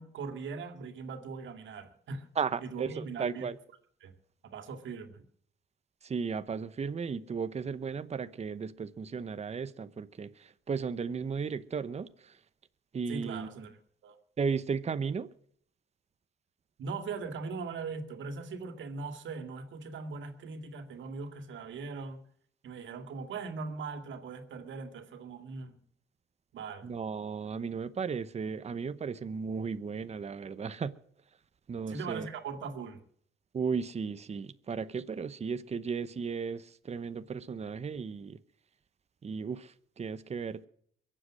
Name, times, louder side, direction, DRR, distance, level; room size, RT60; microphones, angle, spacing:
voice 1, 0.0-2.3 2.6-3.5 4.0-4.1 4.4-5.2 13.1-13.8 14.0-14.2 16.8-22.2 22.6-25.8 26.5-26.9 31.9-33.0, right 4 dB, 70° right, 2.3 m, -40 dB
voice 2, 2.4-3.6 6.0-12.4 12.9-13.5 14.4-15.3 26.8-30.9 31.7-32.3 33.5-38.4 39.2-40.7, right 5 dB, 35° right, 0.9 m, -35 dB
23.0 x 7.8 x 6.3 m
cardioid pair, 90°, 20 cm